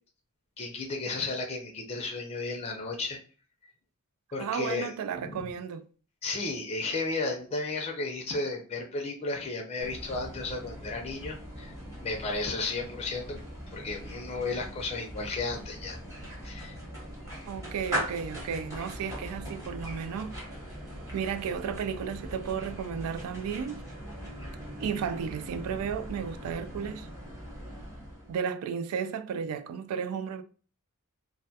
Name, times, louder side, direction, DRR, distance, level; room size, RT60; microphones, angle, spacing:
voice 1, 0.6-3.2 4.3-4.9 5.2-5.5 6.2-11.7 12.0-13.4 13.7-16.0 16.4-16.8, left 3 dB, 30° left, 0.4 m, -33 dB
voice 2, 4.4-5.9 17.5-20.4 21.1-23.8 24.8-27.1 28.3-30.4, right 7 dB, 75° right, 0.3 m, -33 dB
sound 1, 9.8-28.4, equal, 15° right, 0.9 m, -40 dB
2.2 x 2.2 x 2.7 m
head